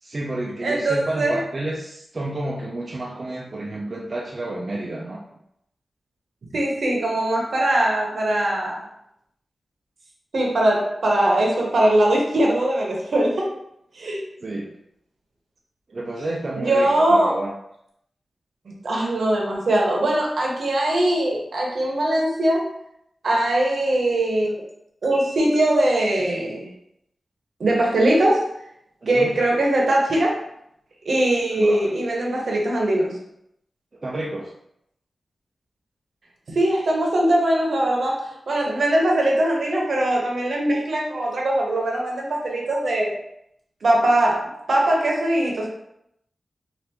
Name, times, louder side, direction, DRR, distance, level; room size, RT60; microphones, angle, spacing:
voice 1, 0.0-5.2 14.4-14.7 15.9-17.5 29.0-29.3 31.5-32.2 33.9-34.5, right 1 dB, 45° right, -2 dB, 0.4 m, -30 dB
voice 2, 0.6-1.4 6.5-8.8 10.3-13.5 13.9-14.2 16.6-17.3 18.7-22.6 23.2-24.5 25.0-26.7 27.6-28.5 29.1-30.4 31.0-33.2 36.5-43.1 43.8-45.7, right 1 dB, 75° right, -2 dB, 0.8 m, -21 dB
3.3 x 2.5 x 2.8 m, 0.77 s
wide cardioid pair, 80°, 0 cm